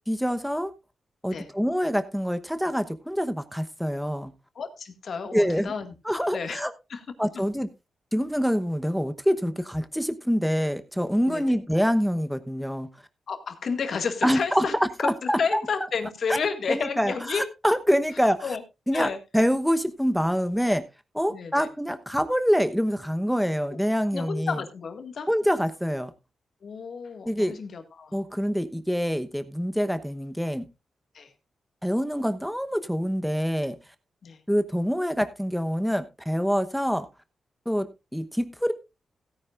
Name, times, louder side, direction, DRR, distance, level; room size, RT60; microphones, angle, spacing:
voice 1, 0.1-0.7 1.2-4.3 5.3-5.7 6.0-6.7 7.2-7.7 8.1-12.9 14.2-15.6 16.7-18.4 18.9-20.8 21.1-24.6 25.3-26.1 27.3-27.5 28.1-30.7 31.8-33.8 34.5-37.1 37.7-38.7, equal, ahead, 10 dB, 1.0 m, -25 dB
voice 2, 4.6-6.6 6.9-7.0 11.3-11.4 13.3-14.7 15.0-17.4 18.4-18.6 18.9-19.2 21.3-21.7 23.7-23.8 24.1-25.3 26.6-28.2 31.1-31.3 34.2-34.4, left 5 dB, 65° left, 7 dB, 2.0 m, -31 dB
16.5 x 10.0 x 2.5 m, 0.25 s
cardioid pair, 80°, 0 cm